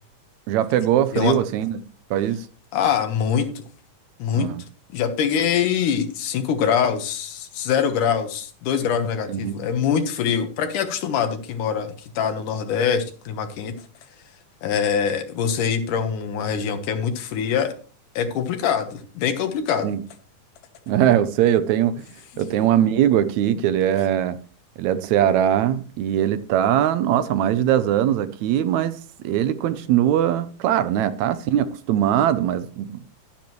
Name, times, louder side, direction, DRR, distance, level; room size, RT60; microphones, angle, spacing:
voice 1, 0.5-1.8 2.1-2.5 4.3-4.6 9.3-9.6 19.8-20.0 20.9-22.1 22.4-24.4 24.8-29.0 29.2-33.1, right 11 dB, 75° right, 1.9 m, -21 dB
voice 2, 2.7-3.6 4.2-4.5 4.9-13.7 14.6-17.7 18.2-20.0 22.3-22.6, left 7 dB, 90° left, 2.8 m, -24 dB
11.5 x 10.0 x 3.1 m
omnidirectional pair, 3.5 m